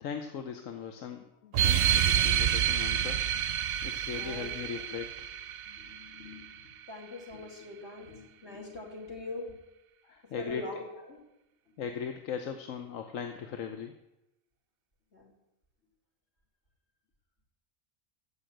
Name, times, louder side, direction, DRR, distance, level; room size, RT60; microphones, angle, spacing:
voice 1, 0.0-3.3 3.8-5.1 10.0-10.6 11.8-13.9, left 7 dB, 80° left, 6 dB, 1.2 m, -39 dB
sound 1, 1.5-6.6, right 9 dB, 60° right, 0.7 m, -28 dB
voice 2, 4.1-4.5 5.7-9.6 10.4-11.2 15.1-15.3, left 2 dB, 55° left, -1 dB, 3.1 m, -43 dB
15.0 x 5.9 x 7.9 m, 0.92 s
omnidirectional pair, 1.3 m